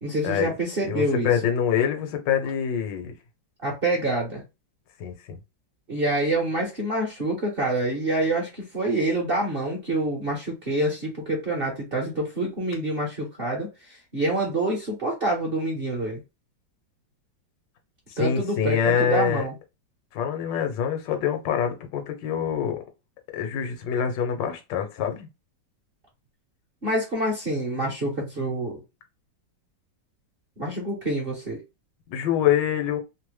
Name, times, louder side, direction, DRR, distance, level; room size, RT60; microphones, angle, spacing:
voice 1, 0.0-1.3 3.6-4.4 5.9-13.7 14.1-16.2 18.2-19.5 26.8-28.8 30.6-31.6, right 1 dB, 45° right, 0.8 m, -26 dB
voice 2, 0.8-3.1 5.0-5.4 18.1-19.4 20.1-22.8 23.3-25.3 32.1-33.0, left 8 dB, 80° left, 1.4 m, -25 dB
3.2 x 2.0 x 3.1 m
omnidirectional pair, 2.0 m